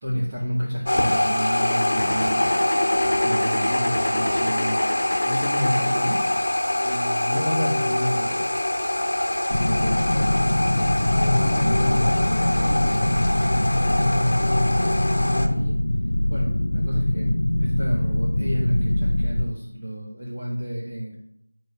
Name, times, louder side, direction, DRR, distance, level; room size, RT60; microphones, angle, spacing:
voice 1, 0.0-2.5 3.0-6.2 6.8-8.4 11.1-12.1 12.4-15.8 16.3-17.3 17.6-21.2, equal, 15° right, -11 dB, 2.1 m, -30 dB
sound 1, 0.8-15.5, left 1 dB, 45° left, 1.9 m, -24 dB
sound 2, 9.5-19.5, left 1 dB, 75° left, 0.7 m, -23 dB
voice 2, 9.5-10.7 11.6-13.0, equal, 10° left, -11 dB, 6.2 m, -33 dB
13.0 x 5.2 x 8.5 m, 0.77 s
figure-of-eight pair, 180°, 0 cm